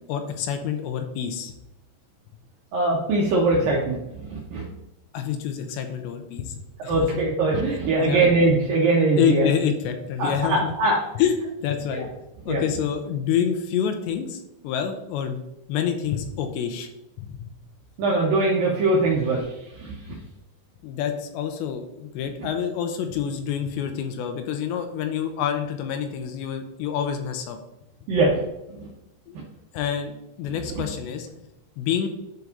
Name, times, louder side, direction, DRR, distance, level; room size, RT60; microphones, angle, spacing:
voice 1, 0.1-1.5 5.1-6.6 6.8-7.0 8.0-8.2 9.2-10.7 11.2-12.1 12.5-15.4 15.7-16.9 17.2-17.5 20.8-27.6 29.3-29.4 29.7-31.3 31.8-32.1, left 8 dB, 85° left, 6 dB, 2.8 m, -27 dB
voice 2, 2.7-4.7 6.8-9.5 10.2-11.0 11.9-12.1 12.5-12.6 18.0-20.2 22.4-22.5 28.1-28.4 28.8-28.9 30.7-30.8, right 2 dB, 75° right, -3 dB, 2.2 m, -22 dB
10.5 x 4.7 x 2.7 m, 0.89 s
omnidirectional pair, 5.2 m